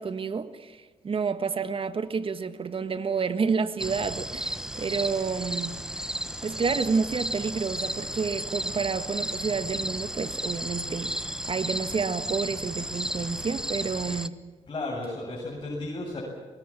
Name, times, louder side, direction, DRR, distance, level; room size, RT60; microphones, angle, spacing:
voice 1, 0.0-5.8 6.4-11.1 11.5-14.4, right 5 dB, 50° right, 1.8 m, -29 dB
sound 1, 3.8-14.3, right 1 dB, 5° right, 1.3 m, -33 dB
voice 2, 14.7-16.2, left 2 dB, 40° left, 8.0 m, -33 dB
24.5 x 21.0 x 7.5 m
cardioid pair, 60°, 12 cm